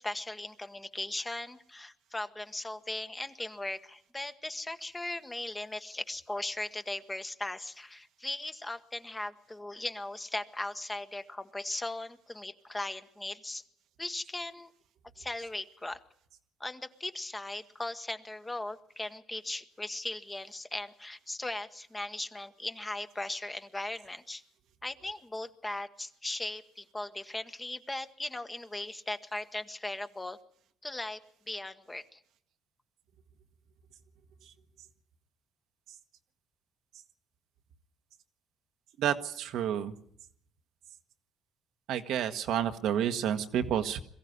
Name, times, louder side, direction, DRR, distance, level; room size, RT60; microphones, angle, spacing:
voice 1, 0.0-13.6 14.0-14.7 15.2-16.0 16.6-24.4 24.8-30.4 30.8-31.2 31.5-32.2, left 2 dB, 15° left, 9 dB, 1.2 m, -38 dB
voice 2, 39.0-39.9 41.9-44.0, right 9 dB, 75° right, 7 dB, 1.3 m, -30 dB
22.5 x 15.0 x 9.4 m, 0.67 s
cardioid pair, 95°, 0 cm